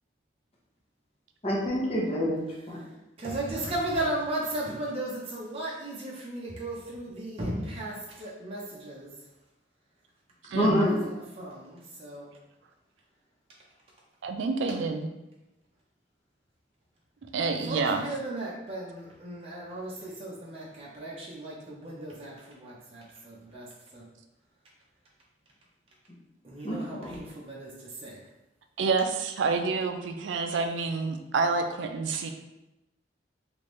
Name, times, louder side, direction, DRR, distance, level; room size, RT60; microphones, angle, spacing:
voice 1, 1.4-2.8 10.5-11.0 26.6-27.1, equal, 35° left, -3 dB, 0.8 m, -27 dB
voice 2, 3.2-9.1 10.5-12.3 17.5-24.0 26.4-28.2 32.1-32.2, right 1 dB, 30° right, -5 dB, 0.6 m, -36 dB
voice 3, 10.5-10.9 14.2-15.1 17.3-18.0 28.8-32.3, right 4 dB, 80° right, 6 dB, 0.3 m, -28 dB
3.5 x 2.5 x 3.1 m, 0.94 s
head